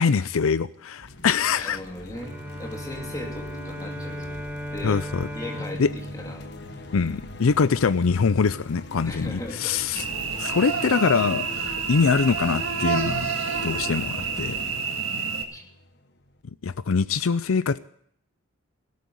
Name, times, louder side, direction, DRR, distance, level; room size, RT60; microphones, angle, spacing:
voice 1, 0.0-1.8 4.8-5.3 5.8-5.9 6.9-10.0 10.4-11.5 11.9-13.3 13.6-14.6 16.6-17.8, left 5 dB, 80° left, 0.5 m, -23 dB
sound 1, 1.0-16.4, left 1 dB, 55° left, 1.2 m, -42 dB
voice 2, 1.6-5.0 5.3-5.9 6.2-6.4 9.0-9.8 15.5-15.6, left 1 dB, 15° left, 2.5 m, -38 dB
Bowed string instrument, 2.1-7.4, equal, 10° right, 1.9 m, -37 dB
Cricket / Buzz, 9.9-15.4, right 5 dB, 75° right, 1.9 m, -28 dB
17.5 x 8.5 x 9.7 m
head